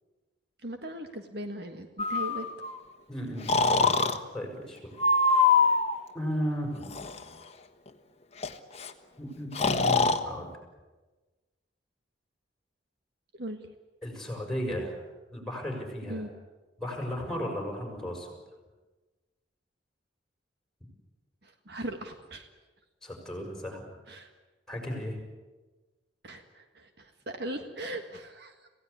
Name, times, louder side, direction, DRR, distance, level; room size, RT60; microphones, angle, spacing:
voice 1, 0.6-2.5 13.4-13.7 16.0-16.3 21.4-22.5 24.1-24.3 26.2-28.7, right 1 dB, 60° right, 6 dB, 1.8 m, -39 dB
Breathing, 2.0-2.8 3.5-4.2 5.0-5.9 6.8-7.2 8.4-8.5 8.7-8.9 9.5-10.2, left 4 dB, 35° left, 1.4 m, -24 dB
voice 2, 3.1-4.9 6.1-6.9 9.2-10.5 14.0-15.0 15.3-16.2 16.8-18.3 23.0-23.9 24.7-25.2, equal, 5° left, 2 dB, 6.3 m, -35 dB
26.5 x 17.0 x 9.7 m, 1.2 s
head